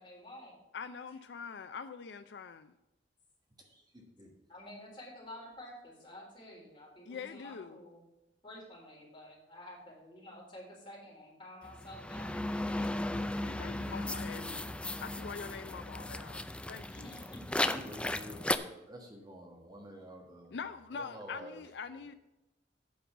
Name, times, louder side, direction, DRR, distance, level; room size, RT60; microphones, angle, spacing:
voice 1, 0.0-0.6 4.5-8.0 8.4-13.2 16.9-17.4, left 1 dB, 30° left, -4 dB, 3.8 m, -50 dB
voice 2, 0.7-2.7 7.1-7.8 13.4-14.7 15.0-17.2 20.5-22.1, left 5 dB, 70° left, 11 dB, 0.4 m, -44 dB
voice 3, 3.6-4.3 17.6-20.6 20.9-21.6 21.9-22.1, right 1 dB, 25° right, 1 dB, 1.4 m, -49 dB
sound 1, 11.6-18.6, left 1 dB, 5° left, 0.4 m, -36 dB
8.6 x 5.3 x 7.1 m, 0.95 s
head